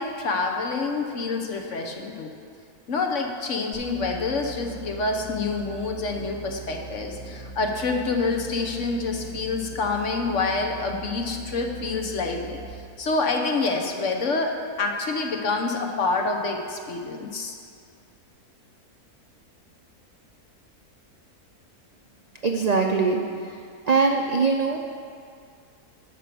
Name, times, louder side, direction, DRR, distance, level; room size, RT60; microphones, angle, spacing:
voice 1, 0.0-2.3 2.9-12.6 13.0-17.6, left 3 dB, 55° left, 3 dB, 1.2 m, -27 dB
sound 1, 3.7-12.8, right 3 dB, 85° left, 3.0 m, -41 dB
voice 2, 22.4-23.6 23.9-24.8, right 4 dB, 65° right, 2 dB, 0.4 m, -22 dB
11.0 x 6.5 x 6.9 m, 2.3 s
omnidirectional pair, 1.6 m